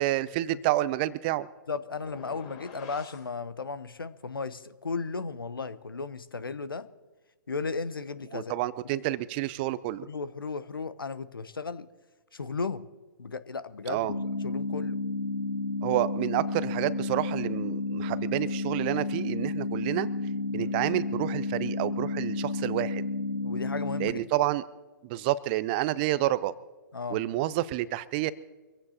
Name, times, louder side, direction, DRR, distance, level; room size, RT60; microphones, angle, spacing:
voice 1, 0.0-1.5 8.3-10.1 13.9-14.1 15.8-20.1 20.5-23.0 24.0-24.6 25.0-26.5 27.1-28.3, right 15 dB, 25° right, 17 dB, 0.5 m, -29 dB
voice 2, 1.7-6.9 7.5-8.5 10.1-11.9 12.3-12.9 13.2-14.1 14.4-15.0 20.5-20.7 23.4-24.2 26.9-27.2, left 4 dB, 80° left, 15 dB, 0.9 m, -35 dB
sound 1, 2.0-3.3, left 6 dB, 30° left, 4.0 m, -47 dB
sound 2, 14.1-24.1, left 3 dB, 60° left, 2.0 m, -31 dB
24.5 x 15.5 x 2.9 m, 1.2 s
figure-of-eight pair, 130°, 12 cm